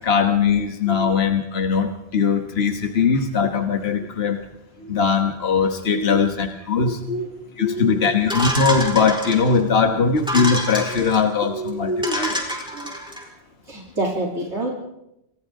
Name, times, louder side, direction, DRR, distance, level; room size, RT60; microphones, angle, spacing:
voice 1, 0.0-4.4 4.9-7.0 7.6-12.3, left 5 dB, 65° left, 5 dB, 1.7 m, -20 dB
voice 2, 5.9-6.3 6.8-7.3 7.6-8.2 10.9-11.1 11.5-12.9 13.7-14.7, right 1 dB, 85° right, -3 dB, 3.7 m, -28 dB
sound 1, 8.3-9.6 10.2-11.2 11.7-11.8 12.0-13.2, equal, 5° right, 4.7 m, -27 dB
29.0 x 26.0 x 3.8 m, 0.87 s
omnidirectional pair, 1.1 m